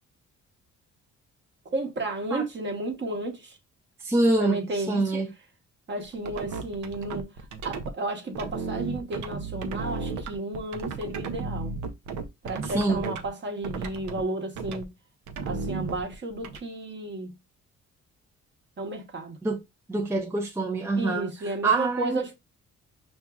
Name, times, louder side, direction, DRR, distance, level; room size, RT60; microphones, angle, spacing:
voice 1, 1.6-3.6 4.4-5.2 5.9-7.3 7.6-11.7 12.4-14.9 15.4-17.3 18.8-19.4 21.0-22.4, right 2 dB, 35° right, 1.1 m, -33 dB
voice 2, 4.0-5.3 12.7-13.1 19.4-19.6 19.9-21.3 21.6-22.2, right 2 dB, 10° right, 0.5 m, -25 dB
sound 1, 6.0-7.9 8.3-13.3 13.6-14.2 14.6-14.8 15.3-16.6, right 4 dB, 80° right, 0.7 m, -34 dB
5.7 x 2.6 x 2.3 m
cardioid pair, 90°, 30 cm